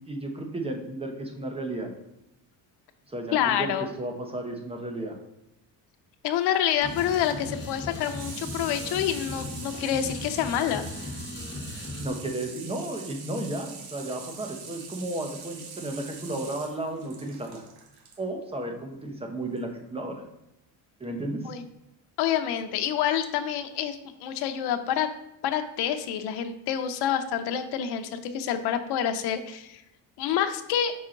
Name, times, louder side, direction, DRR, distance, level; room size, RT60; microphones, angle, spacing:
voice 1, 0.1-1.9 3.1-3.7 4.0-5.2 12.0-17.6 18.2-20.2 21.0-21.5, right 1 dB, 15° right, 3 dB, 0.9 m, -33 dB
voice 2, 3.3-3.9 6.2-10.8 21.4-21.6 22.2-25.1 25.4-29.8 30.2-30.9, left 10 dB, 90° left, 7 dB, 0.7 m, -27 dB
Water tap faucet / Sink (filling or washing), 6.4-18.2 19.5-19.6, right 5 dB, 85° right, 1.2 m, -44 dB
sound 1, 6.8-12.1, left 2 dB, 30° left, 1.5 m, -38 dB
6.0 x 4.5 x 3.7 m, 0.87 s
cardioid pair, 150°, 38 cm